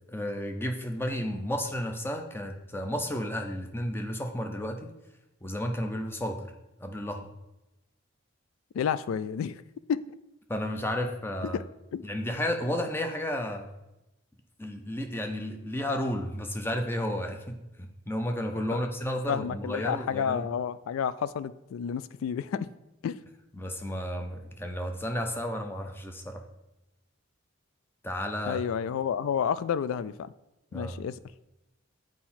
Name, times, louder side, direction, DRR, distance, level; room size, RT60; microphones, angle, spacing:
voice 1, 0.1-4.9 5.4-6.5 6.8-7.3 10.5-11.6 12.0-13.7 14.6-20.5 23.5-26.4 28.0-28.6 30.7-31.0, left 1 dB, 10° left, 0.6 m, -32 dB
voice 2, 8.7-9.6 9.9-10.0 11.5-11.6 11.9-12.1 18.7-18.8 19.3-22.7 23.0-23.2 28.5-30.3 30.7-31.2, left 7 dB, 80° left, 0.3 m, -30 dB
7.7 x 4.7 x 4.3 m
head